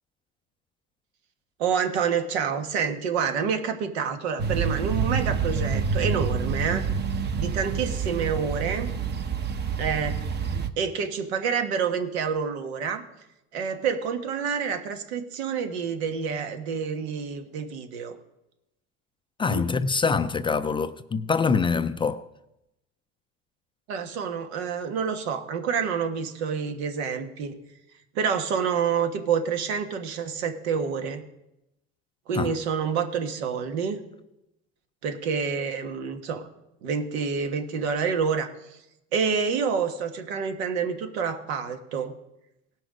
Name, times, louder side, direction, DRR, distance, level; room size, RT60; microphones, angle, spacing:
voice 1, 1.6-6.9 7.4-8.9 9.8-10.2 10.8-13.0 13.5-18.2 19.5-19.7 23.9-27.6 28.1-31.2 32.3-34.0 35.0-36.5 36.8-38.5 39.1-42.1, right 6 dB, 85° right, 1.3 m, -28 dB
sound 1, 4.4-10.7, right 6 dB, 35° right, 0.8 m, -27 dB
voice 2, 19.4-22.2 32.3-32.6, left 5 dB, 15° left, 0.3 m, -25 dB
18.0 x 6.0 x 5.0 m
supercardioid pair, 110°, 31 cm